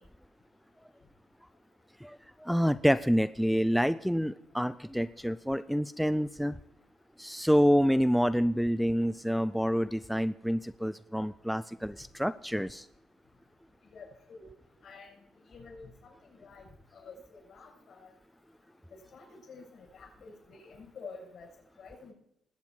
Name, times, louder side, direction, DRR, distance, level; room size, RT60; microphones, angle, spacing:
voice 1, 2.0-6.6 7.2-12.9, equal, ahead, 12 dB, 0.4 m, -27 dB
voice 2, 13.9-14.5 14.8-15.1 15.5-16.7 16.9-18.1 19.1-21.5 21.8-22.1, left 4 dB, 65° left, 0 dB, 6.3 m, -49 dB
20.5 x 8.0 x 4.5 m, 0.78 s
cardioid pair, 90°, 0 cm